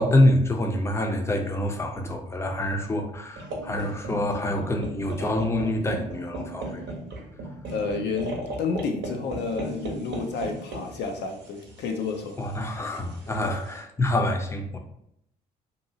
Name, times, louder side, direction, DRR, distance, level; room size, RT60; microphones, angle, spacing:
voice 1, 0.0-6.9 12.4-14.8, left 1 dB, 15° left, 3 dB, 0.6 m, -26 dB
sound 1, 3.4-13.8, right 2 dB, 55° right, 0.8 m, -37 dB
voice 2, 7.7-12.4 13.4-13.5, left 4 dB, 55° left, 4 dB, 0.4 m, -30 dB
2.8 x 2.6 x 2.7 m, 0.74 s
hypercardioid pair, 50°, 21 cm